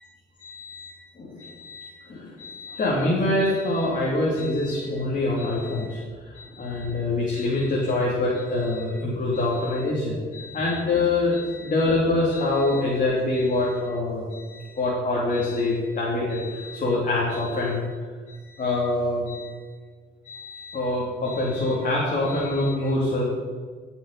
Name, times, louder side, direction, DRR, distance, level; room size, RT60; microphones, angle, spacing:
voice 1, 0.4-6.0 6.3-17.8 18.3-19.6 20.2-23.2, left 2 dB, 40° left, -5 dB, 2.6 m, -25 dB
13.0 x 6.2 x 5.3 m, 1.6 s
cardioid pair, 90°, 20 cm